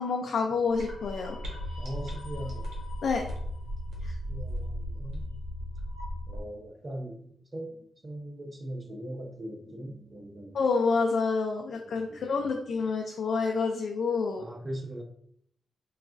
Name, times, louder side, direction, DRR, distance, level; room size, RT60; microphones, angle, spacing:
voice 1, 0.0-1.4 3.0-3.2 4.0-4.2 10.5-14.4, left 4 dB, 70° left, 1 dB, 0.3 m, -28 dB
sound 1, 0.7-6.4, equal, 90° right, 1.0 m, -36 dB
voice 2, 1.8-2.6 4.0-5.3 6.3-10.6 11.8-12.5 14.4-15.0, right 1 dB, 25° right, 3 dB, 0.5 m, -40 dB
4.0 x 2.3 x 2.4 m, 0.68 s
cardioid pair, 110°, 0 cm